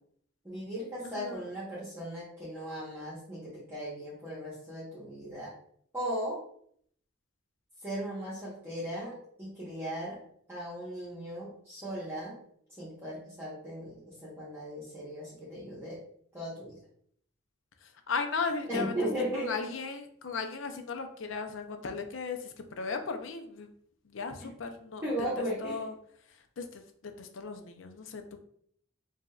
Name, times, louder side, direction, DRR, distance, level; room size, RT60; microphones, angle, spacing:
voice 1, 0.4-5.5 5.9-6.4 7.8-10.2 10.5-12.4 12.8-16.0 16.3-16.8 18.7-19.7 24.4-24.5 25.0-25.8, equal, 10° right, -9 dB, 1.1 m, -37 dB
voice 2, 1.0-1.4 17.8-18.9 19.5-23.7 24.0-25.0 25.6-25.9 26.6-28.4, left 4 dB, 85° left, 6 dB, 0.6 m, -36 dB
4.8 x 2.8 x 2.3 m, 0.64 s
head